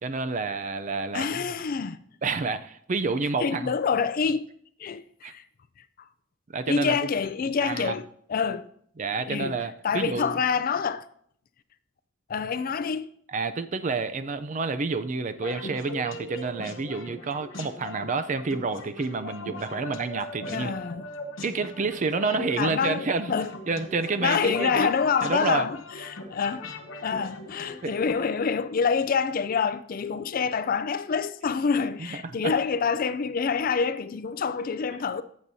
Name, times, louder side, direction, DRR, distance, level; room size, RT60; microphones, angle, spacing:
voice 1, 0.0-1.5 2.2-3.7 5.2-5.3 6.5-7.0 7.6-8.0 9.0-10.4 13.3-20.7 21.4-23.3 23.7-24.9 25.2-25.7 27.8-27.9 32.0-32.5, right 4 dB, 35° right, 0.5 m, -29 dB
voice 2, 1.1-2.0 3.4-4.5 4.8-5.4 6.7-8.7 9.2-9.6 9.8-11.1 12.3-13.1 20.5-21.0 22.6-23.5 24.2-35.2, left 6 dB, 45° left, 0.4 m, -27 dB
sound 1, 15.4-28.1, left 1 dB, 70° left, 1.1 m, -39 dB
14.5 x 7.2 x 2.7 m
head